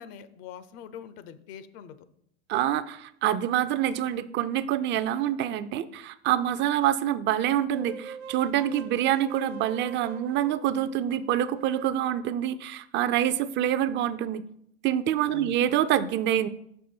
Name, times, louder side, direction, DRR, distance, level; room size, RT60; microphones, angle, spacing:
voice 1, 0.0-2.1 15.3-15.5, left 8 dB, 55° left, 14 dB, 0.7 m, -43 dB
voice 2, 2.5-14.4 14.8-16.5, right 11 dB, 35° right, 15 dB, 0.4 m, -26 dB
sound 1, 7.7-11.9, right 7 dB, 85° right, 0.5 m, -44 dB
5.9 x 5.5 x 4.4 m, 0.73 s
hypercardioid pair, 90°, 31 cm